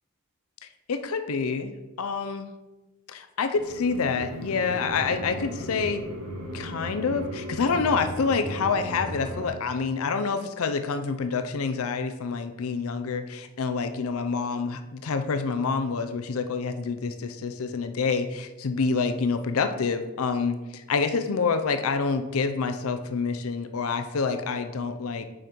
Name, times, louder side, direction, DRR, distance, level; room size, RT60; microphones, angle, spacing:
voice 1, 0.9-1.7 2.0-2.5 3.1-6.0 6.5-25.3, left 5 dB, 75° left, 8 dB, 0.5 m, -27 dB
sound 1, 3.6-9.5, equal, 80° right, 1.4 m, -36 dB
6.4 x 5.1 x 4.4 m, 1.1 s
head